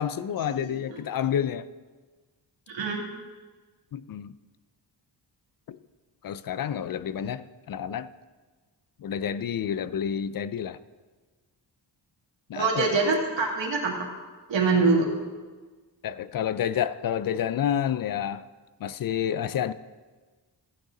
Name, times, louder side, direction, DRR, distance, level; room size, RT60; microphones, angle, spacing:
voice 1, 0.0-1.7 3.9-4.3 5.7-5.8 6.2-8.1 9.0-10.8 12.5-12.9 16.0-18.4 18.8-19.7, left 9 dB, 55° left, 16 dB, 0.4 m, -29 dB
voice 2, 2.7-3.0 12.6-14.1 14.5-15.1, right 4 dB, 85° right, -1 dB, 2.4 m, -24 dB
14.5 x 9.3 x 3.8 m, 1.4 s
wide cardioid pair, 135°, 44 cm